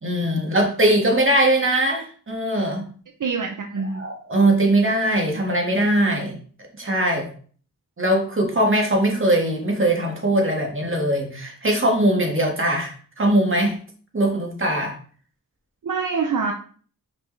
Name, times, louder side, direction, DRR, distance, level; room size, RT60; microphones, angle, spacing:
voice 1, 0.0-2.9 3.9-6.4 6.8-7.3 8.0-13.8 14.1-14.9, right 1 dB, 35° right, 1 dB, 1.8 m, -21 dB
voice 2, 3.2-4.0 5.3-5.4 15.8-16.5, right 5 dB, 65° right, 3 dB, 0.7 m, -25 dB
5.6 x 5.3 x 3.2 m, 0.44 s
wide cardioid pair, 90°, 34 cm